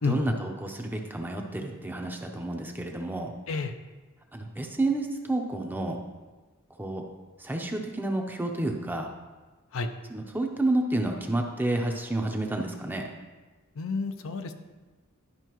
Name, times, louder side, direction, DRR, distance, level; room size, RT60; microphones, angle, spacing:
voice 1, 0.0-3.3 4.3-6.0 6.8-7.0 7.4-9.1 10.1-13.1, right 2 dB, 10° right, 2 dB, 0.7 m, -30 dB
voice 2, 13.8-14.5, left 4 dB, 70° left, 7 dB, 0.5 m, -29 dB
11.0 x 5.5 x 3.0 m, 1.3 s
head